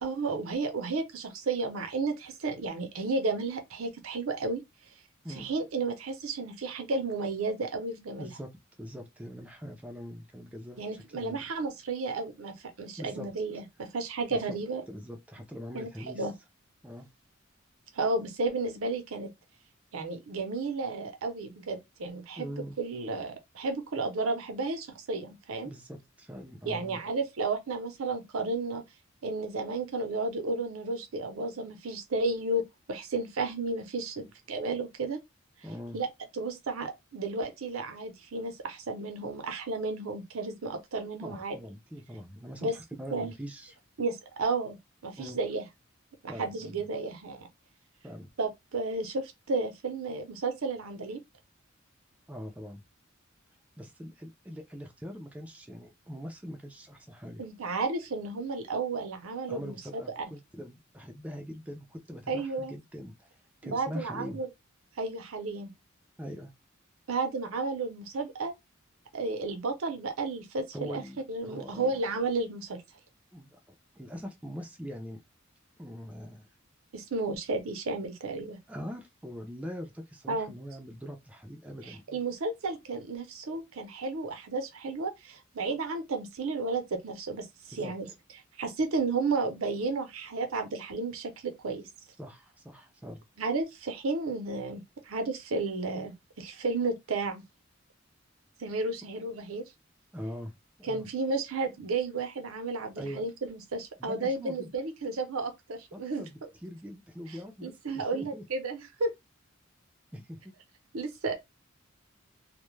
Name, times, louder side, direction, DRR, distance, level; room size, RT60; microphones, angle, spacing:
voice 1, 0.0-4.6 5.4-8.3 10.8-14.8 15.7-15.9 16.1-16.3 17.9-19.3 19.9-25.7 26.7-28.8 29.2-35.2 35.9-36.1 36.3-41.6 42.6-42.7 43.1-43.3 44.0-44.8 45.0-45.6 46.2-47.5 48.4-51.2 57.4-59.8 60.2-60.3 62.3-62.7 63.6-64.5 65.0-65.7 67.1-68.5 69.1-71.0 71.3-72.8 76.9-78.6 80.3-80.5 81.9-88.1 88.6-91.9 93.4-97.4 98.6-99.6 100.8-106.2 107.6-109.1 110.9-111.4, right 3 dB, 85° right, 0.6 m, -32 dB
voice 2, 8.2-8.5 8.8-11.4 13.0-13.3 14.3-14.6 14.9-16.3 16.8-17.1 22.4-22.8 25.6-27.1 34.2-34.3 35.6-36.0 41.2-43.8 45.2-45.4 46.3-46.9 48.0-48.3 52.3-52.8 53.8-57.4 59.5-63.4 63.6-64.4 66.2-66.5 70.7-72.0 73.3-75.2 75.8-76.5 78.7-82.2 87.7-87.9 92.2-93.2 100.1-100.5 100.9-101.1 103.0-103.2 104.0-104.7 105.9-108.5 110.1-110.5, equal, 5° right, 0.3 m, -42 dB
2.2 x 2.0 x 3.0 m
head